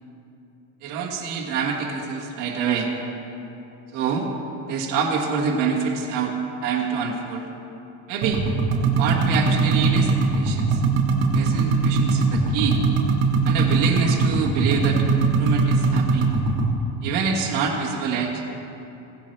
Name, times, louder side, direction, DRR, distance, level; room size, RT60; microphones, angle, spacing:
voice 1, 0.8-2.9 3.9-4.3 4.7-6.3 6.6-7.4 8.1-8.4 9.0-10.8 11.3-12.8 13.4-16.3 17.0-18.4, right 5 dB, 55° right, -4 dB, 1.7 m, -26 dB
sound 1, 8.2-16.7, right 4 dB, 90° right, 1.5 m, -21 dB
17.0 x 8.5 x 3.3 m, 2.8 s
cardioid pair, 150°, 37 cm